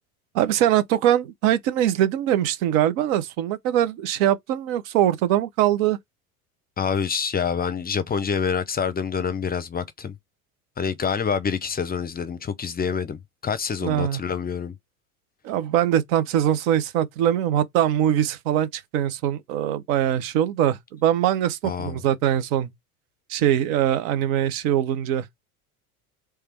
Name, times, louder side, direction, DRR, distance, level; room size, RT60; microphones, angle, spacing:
voice 1, 0.3-6.0 13.8-14.2 15.4-22.7 23.3-25.2, right 11 dB, 65° right, 1.0 m, -22 dB
voice 2, 6.8-10.1 10.8-14.7 21.6-22.0, left 6 dB, 20° left, 0.6 m, -27 dB
3.3 x 3.3 x 4.5 m
hypercardioid pair, 85°, 44 cm